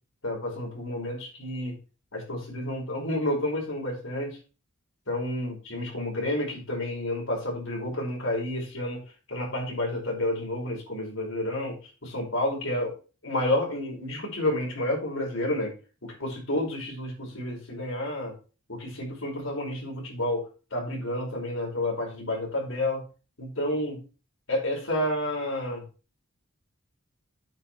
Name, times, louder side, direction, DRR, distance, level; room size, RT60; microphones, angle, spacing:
voice 1, 0.2-1.7 2.1-4.4 5.1-9.0 9.3-11.8 12.0-13.0 13.2-15.7 16.0-18.3 18.7-23.0 23.4-24.0 24.5-25.8, left 1 dB, 70° left, -1 dB, 5.1 m, -30 dB
9.0 x 5.5 x 5.8 m, 0.34 s
head